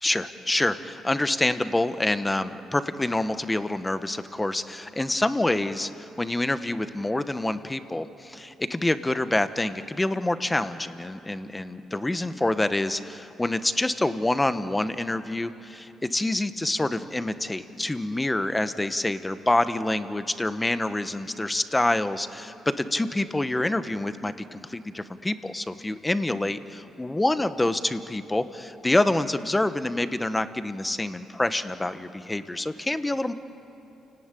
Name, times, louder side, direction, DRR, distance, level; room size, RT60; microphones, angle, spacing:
voice 1, 0.0-33.3, left 2 dB, 15° left, 11 dB, 1.1 m, -27 dB
29.0 x 18.0 x 9.2 m, 2.9 s
cardioid pair, 90°, 0 cm